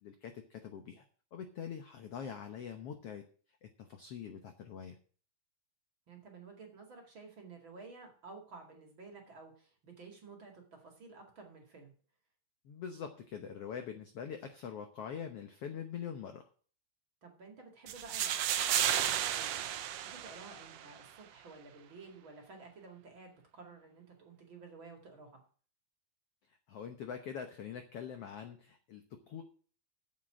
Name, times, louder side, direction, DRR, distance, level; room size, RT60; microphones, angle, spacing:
voice 1, 0.0-1.1 1.3-3.3 3.6-5.0 12.6-16.5 26.5-29.4, left 7 dB, 80° left, 6 dB, 1.3 m, -44 dB
voice 2, 6.1-11.9 17.2-19.6 20.0-25.4, right 4 dB, 40° right, 2 dB, 2.5 m, -53 dB
sound 1, 17.9-20.9, right 11 dB, 90° right, 1.4 m, -33 dB
8.8 x 7.8 x 7.7 m, 0.43 s
omnidirectional pair, 4.1 m